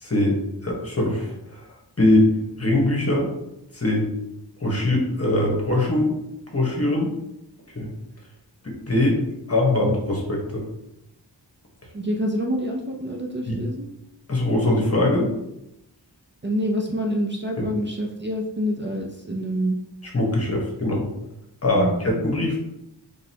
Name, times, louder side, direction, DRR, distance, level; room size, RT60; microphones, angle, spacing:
voice 1, 0.0-1.6 2.0-2.3 2.6-3.3 3.7-4.1 4.6-6.1 6.5-7.1 7.7-7.9 8.6-9.2 9.5-10.6 13.5-13.6 14.3-15.3 20.1-21.1 21.6-22.6, left 1 dB, 35° left, -1 dB, 1.2 m, -22 dB
voice 2, 11.9-13.9 16.4-19.8 21.7-22.0, equal, 25° right, 0 dB, 0.5 m, -26 dB
4.0 x 3.4 x 2.8 m, 0.86 s
wide cardioid pair, 60°, 43 cm